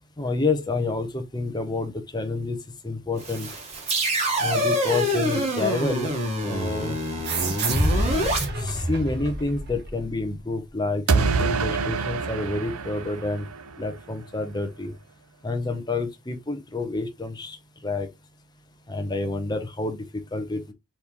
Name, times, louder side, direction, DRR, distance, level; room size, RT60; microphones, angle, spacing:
voice 1, 0.2-2.6 2.8-3.5 4.4-6.1 6.4-7.0 8.6-13.5 13.8-14.9 15.4-17.6 17.8-18.1 18.9-20.0 20.3-20.7, left 3 dB, 20° left, 0.7 m, -28 dB
sound 1, 3.2-8.4, equal, 30° right, 1.7 m, -26 dB
sound 2, 7.2-10.3, right 1 dB, 50° right, 1.4 m, -27 dB
sound 3, 11.1-14.0, right 4 dB, 75° right, 0.6 m, -25 dB
4.3 x 3.5 x 3.0 m
head